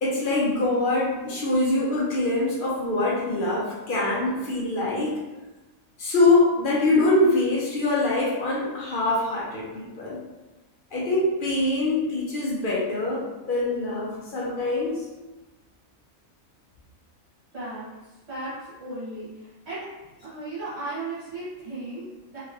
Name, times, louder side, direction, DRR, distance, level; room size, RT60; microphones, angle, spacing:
voice 1, 0.0-5.2 6.0-10.2 10.9-15.1, left 2 dB, 50° left, -5 dB, 0.6 m, -24 dB
voice 2, 17.5-17.9 18.3-18.5 18.8-19.3 19.6-19.8 20.2-22.4, right 2 dB, 55° right, -12 dB, 1.3 m, -35 dB
2.9 x 2.8 x 2.5 m, 1.1 s
omnidirectional pair, 1.4 m